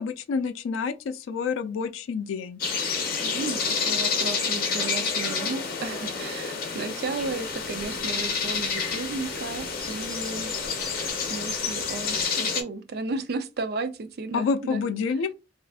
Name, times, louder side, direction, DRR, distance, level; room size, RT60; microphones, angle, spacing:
voice 1, 0.0-2.6 14.3-15.3, left 5 dB, 75° left, 0.3 m, -28 dB
sound 1, 2.6-12.6, left 5 dB, 50° left, 0.7 m, -29 dB
voice 2, 3.1-10.5 11.3-14.9, right 3 dB, 55° right, 0.4 m, -34 dB
sound 2, 7.1-12.3, equal, ahead, 0.9 m, -46 dB
2.4 x 2.4 x 3.4 m
head